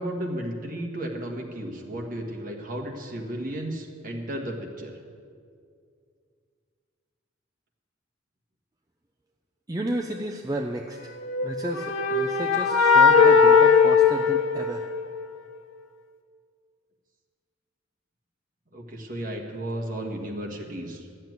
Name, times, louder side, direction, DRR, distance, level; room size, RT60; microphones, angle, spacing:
voice 1, 0.0-5.0 18.7-21.1, right 1 dB, 45° right, 1 dB, 1.7 m, -34 dB
voice 2, 9.7-11.1 11.4-14.8, right 1 dB, 20° right, 2 dB, 0.6 m, -32 dB
sound 1, 11.2-15.1, left 5 dB, 75° left, 1.0 m, -18 dB
12.5 x 7.4 x 9.3 m, 2.3 s
head